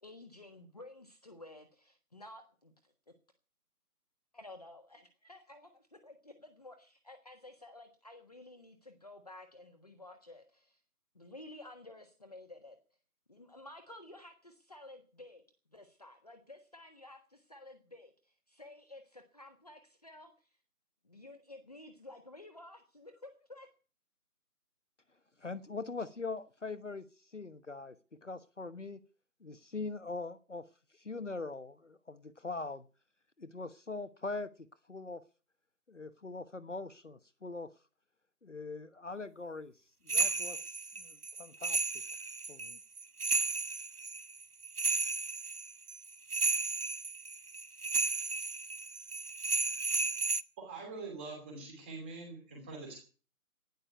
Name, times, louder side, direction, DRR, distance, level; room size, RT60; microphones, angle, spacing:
voice 1, 0.0-3.1 4.3-10.8 11.1-12.8 13.3-15.4 15.7-20.5 21.0-23.7, left 2 dB, 25° left, 6 dB, 1.4 m, -53 dB
voice 2, 25.4-27.1 27.3-29.0 29.4-30.7 31.0-32.8 33.4-34.5 34.9-35.2 35.9-37.7 38.4-39.7 40.0-40.6 41.0-41.8 42.5-42.8, left 3 dB, 55° left, 13 dB, 1.1 m, -42 dB
sound 1, 40.1-50.4, right 4 dB, 80° right, 1.1 m, -33 dB
voice 3, 50.6-53.0, right 3 dB, 10° right, 1 dB, 2.8 m, -44 dB
12.0 x 11.0 x 9.4 m, 0.38 s
figure-of-eight pair, 160°, 45 cm